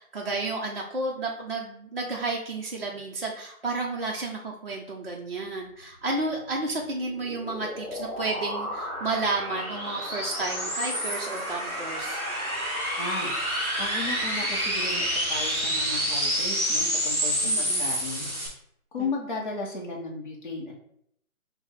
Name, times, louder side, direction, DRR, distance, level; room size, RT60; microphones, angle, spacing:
voice 1, 0.0-12.2 17.4-17.8 19.0-19.1, right 3 dB, 45° right, -2 dB, 0.5 m, -32 dB
sound 1, 6.7-18.5, equal, 5° left, 1.4 m, -29 dB
voice 2, 13.0-18.5 18.9-20.8, left 3 dB, 35° left, -3 dB, 0.6 m, -35 dB
5.5 x 2.0 x 4.1 m, 0.71 s
figure-of-eight pair, 160°, 44 cm